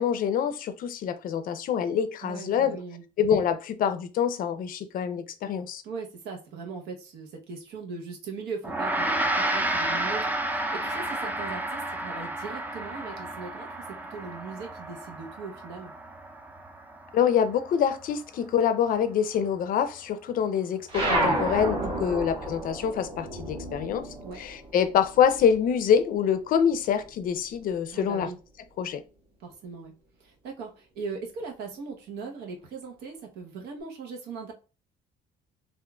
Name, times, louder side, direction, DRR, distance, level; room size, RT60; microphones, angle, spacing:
voice 1, 0.0-2.8 3.2-5.8 17.1-24.1 24.4-28.3 28.8-29.0, left 8 dB, 55° left, 0.5 m, -25 dB
voice 2, 2.2-3.0 5.8-15.9 21.8-22.0 24.2-24.4 27.9-28.4 29.4-29.9 30.2-34.5, right 4 dB, 80° right, 0.9 m, -39 dB
Gong, 8.6-18.2, right 1 dB, 10° right, 0.4 m, -31 dB
sound 1, 20.9-25.8 26.1-27.5, right 1 dB, 30° right, 1.4 m, -31 dB
3.6 x 2.4 x 2.2 m
cardioid pair, 110°, 17 cm